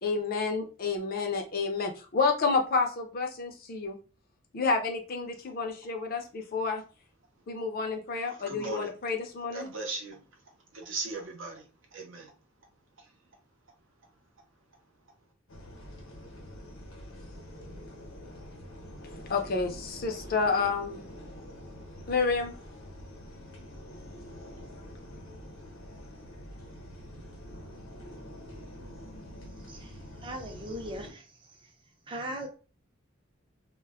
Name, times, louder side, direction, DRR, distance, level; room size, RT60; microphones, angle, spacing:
voice 1, 0.0-4.0 4.5-6.8 7.5-9.7 19.3-21.0 22.1-22.5, left 4 dB, 50° left, 4 dB, 0.5 m, -29 dB
voice 2, 8.5-8.9 9.5-10.2 10.7-11.6 11.9-12.3 13.0-13.1, right 3 dB, 70° right, 3 dB, 0.7 m, -37 dB
sound 1, 15.5-31.1, equal, 85° left, 0.8 m, -46 dB
voice 3, 30.2-31.2 32.1-32.5, right 1 dB, 25° right, 3 dB, 0.5 m, -38 dB
2.2 x 2.0 x 3.4 m, 0.35 s
head